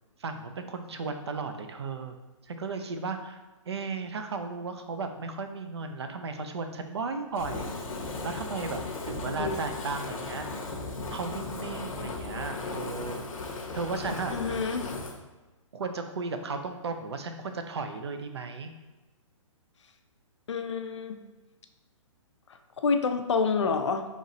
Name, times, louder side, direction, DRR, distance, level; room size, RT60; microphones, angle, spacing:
voice 1, 0.2-2.2 2.4-3.4 3.7-7.7 8.2-10.5 11.1-13.3 13.7-14.6 15.7-18.7, right 4 dB, 50° right, 6 dB, 0.4 m, -35 dB
Fire, 7.3-15.2, left 3 dB, 85° left, 0.8 m, -36 dB
voice 2, 14.3-14.9 20.5-21.2 22.8-24.1, left 5 dB, 60° left, 7 dB, 0.5 m, -28 dB
4.1 x 3.0 x 3.9 m, 1.2 s
hypercardioid pair, 180°, 17 cm